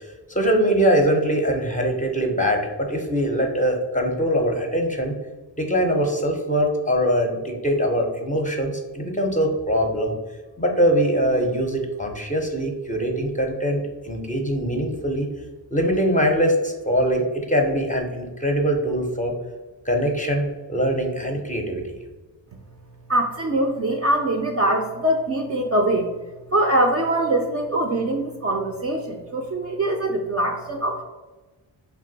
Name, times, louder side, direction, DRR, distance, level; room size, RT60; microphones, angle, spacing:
voice 1, 0.0-5.2 5.6-10.1 10.6-15.3 15.7-19.3 19.8-22.0, equal, 15° left, 2 dB, 0.5 m, -22 dB
voice 2, 23.1-26.1 26.5-31.0, right 1 dB, 35° right, 1 dB, 0.4 m, -23 dB
2.6 x 2.2 x 3.8 m, 1.2 s
cardioid pair, 50°, 49 cm